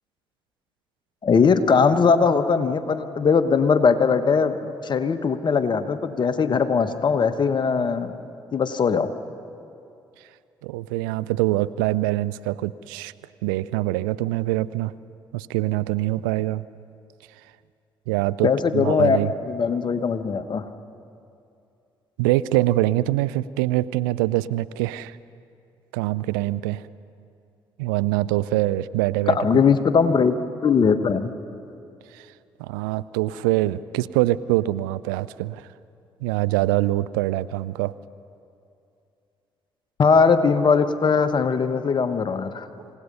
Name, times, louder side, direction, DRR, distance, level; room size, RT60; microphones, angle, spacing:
voice 1, 1.2-8.2 8.5-9.1 18.4-19.2 19.5-20.6 29.3-31.3 40.0-42.7, left 5 dB, 45° left, 10 dB, 1.3 m, -20 dB
voice 2, 10.6-13.1 13.4-14.9 15.3-16.7 18.1-19.3 22.2-25.2 25.9-26.8 27.8-29.4 32.1-32.3 32.6-35.7 36.2-37.9 42.8-42.9, right 16 dB, 80° right, 17 dB, 0.4 m, -24 dB
27.0 x 17.0 x 5.5 m, 2.6 s
hypercardioid pair, 45°, 11 cm